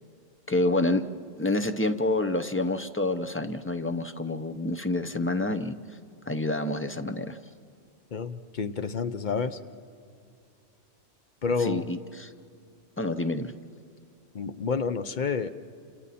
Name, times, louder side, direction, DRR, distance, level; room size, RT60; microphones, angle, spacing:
voice 1, 0.5-1.0 1.4-5.7 6.3-7.4 11.6-12.3 13.0-13.5, left 2 dB, 15° left, 8 dB, 0.6 m, -28 dB
voice 2, 8.1-9.6 11.4-11.8 14.3-15.5, left 5 dB, 50° left, 10 dB, 0.8 m, -29 dB
29.0 x 27.5 x 4.2 m, 2.4 s
omnidirectional pair, 1.1 m